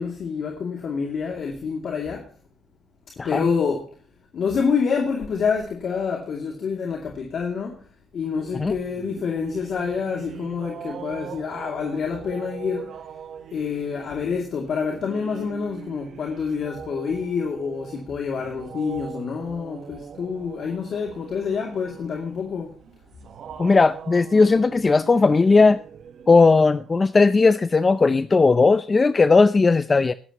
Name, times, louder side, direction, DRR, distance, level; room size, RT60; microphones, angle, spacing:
voice 1, 0.0-2.3 3.2-4.0 4.3-7.9 8.1-13.0 13.5-22.7, left 6 dB, 60° left, 2.5 m, -27 dB
sound 1, 8.4-26.9, right 8 dB, 65° right, 1.2 m, -41 dB
voice 2, 23.6-25.8 26.3-30.1, left 4 dB, 30° left, 0.5 m, -17 dB
21.5 x 11.0 x 3.0 m
cardioid pair, 90°, 0 cm